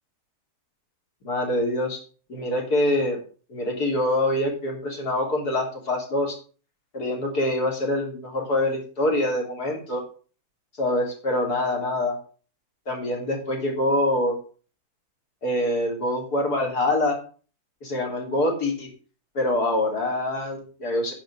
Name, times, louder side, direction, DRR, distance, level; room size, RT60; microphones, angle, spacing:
voice 1, 1.2-2.0 2.3-3.2 3.5-6.4 6.9-10.0 10.8-12.2 12.9-14.4 15.4-17.2 17.8-18.9 19.3-21.1, left 1 dB, 80° left, 1 dB, 3.9 m, -25 dB
10.0 x 5.5 x 7.6 m, 0.39 s
omnidirectional pair, 1.6 m